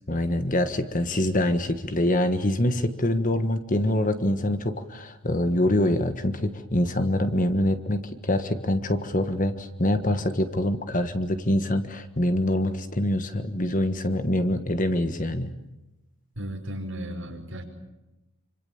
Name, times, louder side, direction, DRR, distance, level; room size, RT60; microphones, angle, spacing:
voice 1, 0.1-15.5, left 1 dB, 35° left, 9 dB, 1.5 m, -25 dB
voice 2, 16.4-17.6, equal, 60° right, 2 dB, 5.3 m, -34 dB
26.5 x 26.0 x 7.2 m, 1.0 s
head